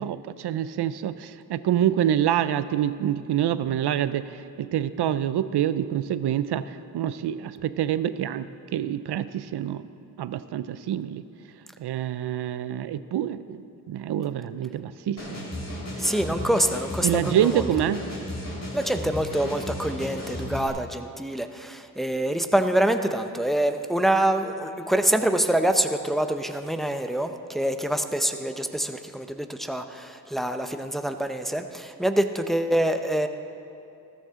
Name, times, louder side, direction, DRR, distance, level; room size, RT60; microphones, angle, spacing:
voice 1, 0.0-9.8 10.2-11.2 11.8-15.5 16.0-16.1 17.0-18.1, right 10 dB, 85° right, 14 dB, 0.5 m, -26 dB
sound 1, 15.2-20.7, left 1 dB, 55° left, 3.6 m, -34 dB
voice 2, 16.0-17.7 18.7-33.3, right 1 dB, ahead, 7 dB, 0.7 m, -25 dB
14.0 x 13.0 x 3.7 m, 2.6 s
cardioid pair, 50°, 39 cm